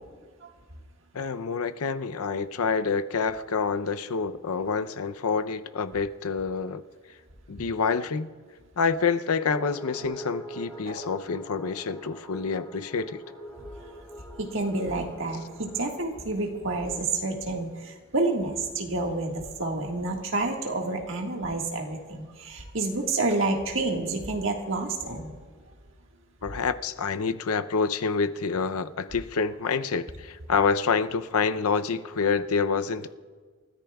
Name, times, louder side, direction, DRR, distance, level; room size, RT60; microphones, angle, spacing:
voice 1, 1.1-6.8 7.5-8.3 8.8-13.2 26.4-33.1, left 5 dB, 85° left, 10 dB, 0.6 m, -27 dB
sound 1, 9.5-15.9, right 1 dB, 10° left, 2.6 m, -43 dB
voice 2, 14.4-25.3, right 2 dB, 60° right, 1 dB, 1.7 m, -29 dB
29.0 x 14.0 x 2.4 m, 1.5 s
head